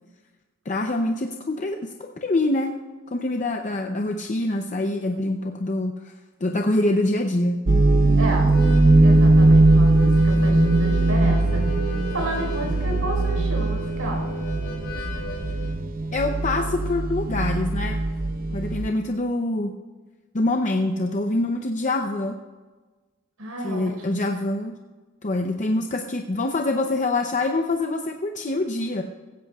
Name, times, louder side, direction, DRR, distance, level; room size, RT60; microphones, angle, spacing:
voice 1, 0.7-2.7 3.1-6.1 6.4-7.6 16.1-18.0 18.5-19.7 20.3-22.4 23.6-24.8 25.2-29.0, left 2 dB, 35° left, 4 dB, 0.6 m, -25 dB
sound 1, 7.7-18.9, right 2 dB, 40° right, 0.7 m, -20 dB
voice 2, 8.2-8.5 9.0-11.6 12.1-14.3 23.4-24.2, right 2 dB, 85° right, 0 dB, 4.6 m, -31 dB
Harmonica, 8.4-15.8, left 1 dB, 75° left, 4.2 m, -36 dB
16.5 x 15.0 x 2.4 m, 1.3 s
head